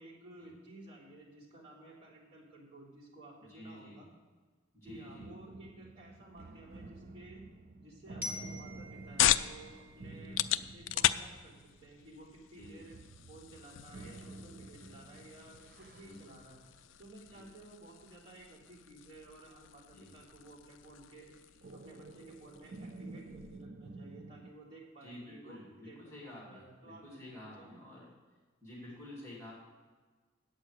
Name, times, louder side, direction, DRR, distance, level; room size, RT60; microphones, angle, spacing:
voice 1, 0.0-4.1 4.8-7.5 7.8-13.0 13.3-16.6 17.0-26.0 26.2-27.1 27.3-27.8, right 2 dB, 30° right, -7 dB, 3.3 m, -54 dB
voice 2, 3.5-4.0 4.7-5.3 10.0-10.6 12.5-12.8 15.9-16.1 17.3-17.4 19.9-20.1 25.0-28.1 28.6-29.5, left 1 dB, 15° left, -4 dB, 2.3 m, -50 dB
sound 1, 4.9-17.1 21.6-24.5, right 2 dB, 50° right, 0.4 m, -51 dB
Glockenspiel, 8.2-11.1, left 1 dB, 10° right, 1.1 m, -47 dB
sound 2, 8.5-23.7, left 12 dB, 65° left, 0.3 m, -38 dB
9.1 x 8.0 x 6.3 m, 1.4 s
head